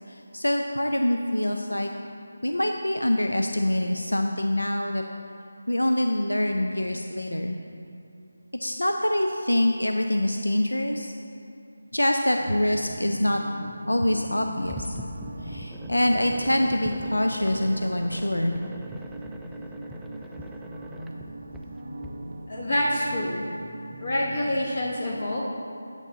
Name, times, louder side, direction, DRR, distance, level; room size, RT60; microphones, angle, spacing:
voice 1, 0.1-1.9 2.4-5.0 5.7-7.6 8.6-11.1 11.9-13.4 13.9-15.0 15.4-18.5, left 1 dB, 85° left, 4 dB, 0.5 m, -25 dB
sound 1, 12.4-24.9, right 1 dB, 45° right, 0.6 m, -40 dB
sound 2, 14.6-22.1, equal, ahead, 0.3 m, -42 dB
voice 2, 22.5-23.5 24.0-25.5, left 1 dB, 55° left, -3 dB, 1.0 m, -27 dB
8.2 x 8.2 x 4.0 m, 2.5 s
figure-of-eight pair, 160°, 0 cm